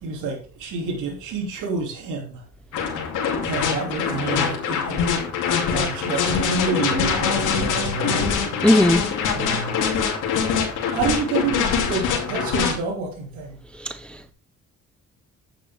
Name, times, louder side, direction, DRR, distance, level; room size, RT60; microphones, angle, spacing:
voice 1, 0.0-2.4 3.4-5.1 5.7-8.4 9.3-9.8 10.9-13.6, right 4 dB, 85° right, 2.8 m, -28 dB
sound 1, 2.7-12.7, left 6 dB, 90° left, 2.5 m, -23 dB
voice 2, 8.6-9.0 13.8-14.3, left 1 dB, 5° left, 0.6 m, -19 dB
9.1 x 7.3 x 3.5 m
cardioid pair, 90°, 30 cm